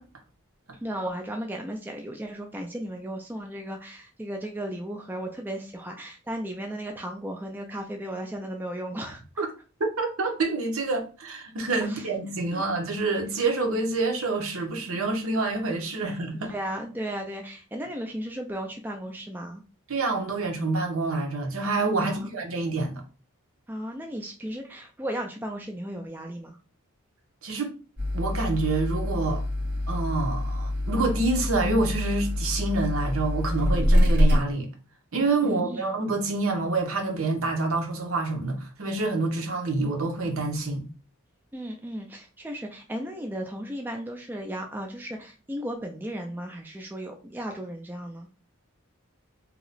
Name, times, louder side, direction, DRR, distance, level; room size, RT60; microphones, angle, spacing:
voice 1, 0.8-9.4 11.9-12.0 12.5-12.6 16.0-16.1 16.5-19.6 22.0-22.3 23.7-26.6 35.4-35.9 41.5-48.3, right 1 dB, 10° right, 0.3 m, -35 dB
voice 2, 9.8-16.5 19.9-23.0 27.4-27.7 28.1-29.4 29.9-34.7 35.1-40.9, right 3 dB, 70° right, 0.8 m, -27 dB
sound 1, 28.0-34.4, left 1 dB, 50° right, 1.0 m, -25 dB
2.8 x 2.1 x 3.9 m
head